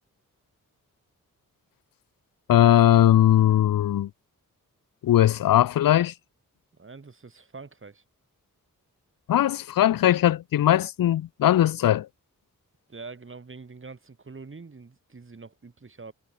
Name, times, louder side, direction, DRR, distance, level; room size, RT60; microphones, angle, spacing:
voice 1, 2.5-4.1 5.0-6.1 9.3-12.1, left 12 dB, 85° left, 0.5 m, -19 dB
voice 2, 6.7-8.0 12.9-16.1, right 4 dB, 35° right, 8.0 m, -44 dB
wide cardioid pair, 150°, 33 cm